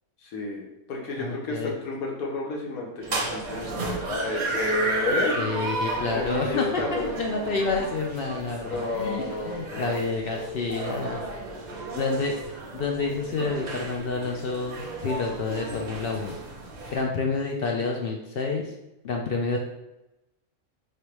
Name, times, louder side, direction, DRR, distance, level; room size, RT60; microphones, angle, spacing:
voice 1, 0.2-5.4 6.0-7.1 8.6-9.9, left 2 dB, 90° left, -1 dB, 1.4 m, -31 dB
voice 2, 1.2-1.7 5.4-11.2 12.0-12.3 12.7-16.4 16.9-18.7 19.0-19.6, left 4 dB, 65° left, 1 dB, 0.6 m, -29 dB
sound 1, 3.0-17.0, right 2 dB, 40° right, 0.7 m, -33 dB
4.5 x 3.3 x 3.0 m, 0.93 s
omnidirectional pair, 1.5 m